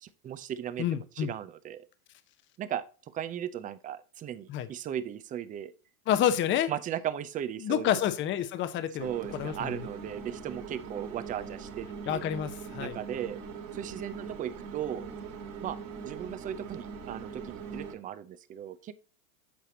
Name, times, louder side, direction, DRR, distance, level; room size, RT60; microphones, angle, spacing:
voice 1, 0.0-1.9 2.6-2.8 3.1-5.7 6.7-8.0 9.0-12.2 12.8-13.4 13.7-15.1 15.6-15.8 16.0-18.9, right 10 dB, 20° right, 15 dB, 0.5 m, -37 dB
voice 2, 0.8-1.3 4.5-4.7 6.1-6.7 7.6-9.8 12.1-13.0, left 10 dB, 25° left, 11 dB, 0.8 m, -29 dB
sound 1, 9.0-17.9, right 6 dB, 65° right, 2.9 m, -41 dB
8.4 x 5.7 x 2.8 m, 0.35 s
supercardioid pair, 125°, 42 cm